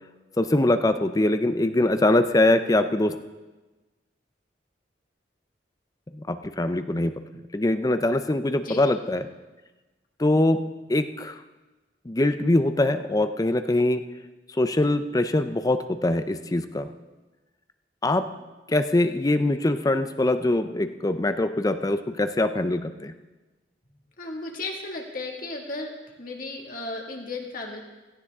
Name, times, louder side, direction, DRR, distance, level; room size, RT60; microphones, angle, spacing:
voice 1, 0.4-3.2 6.1-7.1 7.5-9.3 10.2-10.6 10.9-11.4 12.1-14.0 14.6-16.9 18.0-18.3 18.7-23.1, left 1 dB, 20° left, 10 dB, 0.6 m, -23 dB
voice 2, 24.2-25.9 26.2-27.8, left 2 dB, 50° left, 1 dB, 2.1 m, -34 dB
17.0 x 15.0 x 3.6 m, 1.2 s
head